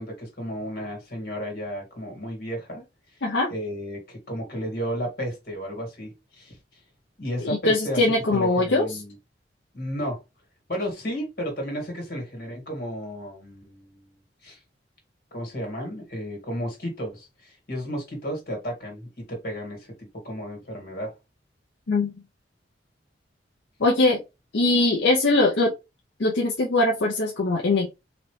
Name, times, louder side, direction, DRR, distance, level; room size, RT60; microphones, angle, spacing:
voice 1, 0.0-2.9 3.5-6.6 7.2-8.0 8.3-9.1 9.7-10.2 10.7-14.0 14.4-14.6 15.3-21.1, equal, 55° left, 2.0 m, -33 dB
voice 2, 7.4-8.9 21.9-22.1 23.8-24.2 24.5-25.7 26.2-27.9, left 2 dB, 80° left, 0.7 m, -21 dB
4.0 x 2.9 x 3.2 m
head